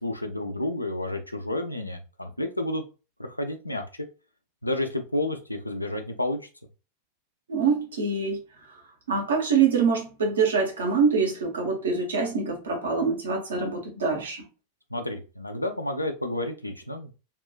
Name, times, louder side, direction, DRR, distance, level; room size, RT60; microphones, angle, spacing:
voice 1, 0.0-2.8 3.2-4.1 4.6-6.4 14.9-17.1, left 1 dB, 85° left, 0.4 m, -30 dB
voice 2, 7.5-8.4 8.7-8.8 9.1-14.4, right 5 dB, 70° right, 0.8 m, -25 dB
2.9 x 2.2 x 2.2 m
figure-of-eight pair, 90°, 0 cm